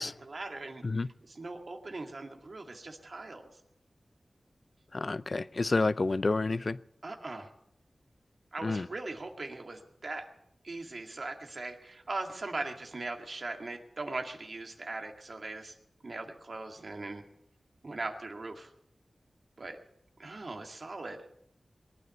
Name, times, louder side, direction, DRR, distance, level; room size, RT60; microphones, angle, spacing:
voice 1, 0.0-0.8 1.2-3.5 7.0-7.5 8.5-10.3 10.6-15.7 16.0-17.2 17.8-18.7 19.6-19.8 20.2-21.2, right 2 dB, 55° right, 4 dB, 2.1 m, -40 dB
voice 2, 4.9-6.8 8.6-8.9, left 3 dB, 50° left, 17 dB, 0.5 m, -29 dB
22.0 x 9.7 x 6.8 m, 0.79 s
wide cardioid pair, 85°, 0 cm